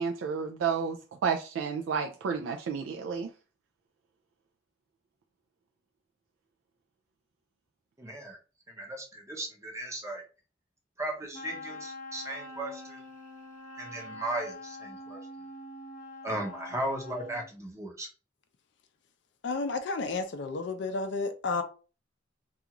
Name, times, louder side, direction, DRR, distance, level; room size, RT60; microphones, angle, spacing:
voice 1, 0.0-3.3, right 6 dB, 85° right, 0.3 m, -31 dB
voice 2, 8.0-8.4 8.7-10.2 11.0-13.0 13.8-15.2 16.2-18.1, right 1 dB, 15° right, 0.6 m, -36 dB
Wind instrument woodwind instrument, 11.3-17.5, left 2 dB, 40° left, 0.7 m, -44 dB
voice 3, 19.4-21.6, left 3 dB, 65° left, 0.4 m, -31 dB
2.4 x 2.3 x 2.9 m
head